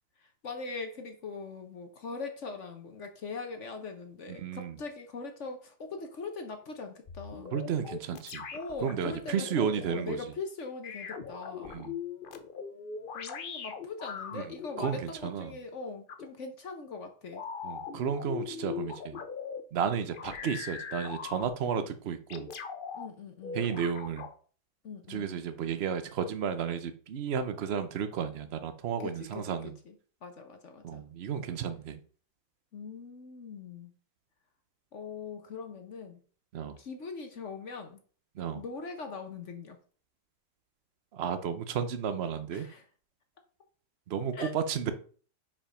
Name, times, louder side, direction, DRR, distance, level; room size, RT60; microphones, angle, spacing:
voice 1, 0.2-7.6 8.5-11.8 13.1-17.4 22.9-23.6 24.8-25.3 29.0-29.9 30.2-31.0 32.7-33.9 34.9-36.2 36.8-38.0 38.5-39.8 42.5-42.8 44.3-44.5, left 4 dB, 50° left, 6 dB, 1.0 m, -41 dB
voice 2, 4.3-4.8 7.5-8.5 8.8-10.3 11.6-11.9 14.3-15.5 17.6-19.2 19.7-22.5 23.5-24.3 25.1-29.7 30.8-32.0 36.5-36.8 38.3-38.6 41.1-42.7 44.1-44.9, right 7 dB, 60° right, 10 dB, 0.6 m, -33 dB
sound 1, 7.1-10.0 10.8-14.8 16.1-16.3 17.3-19.6 20.1-21.8 22.3-23.1 23.4-24.3, left 6 dB, 85° left, 0.4 m, -40 dB
5.6 x 4.9 x 5.0 m, 0.42 s
omnidirectional pair, 2.0 m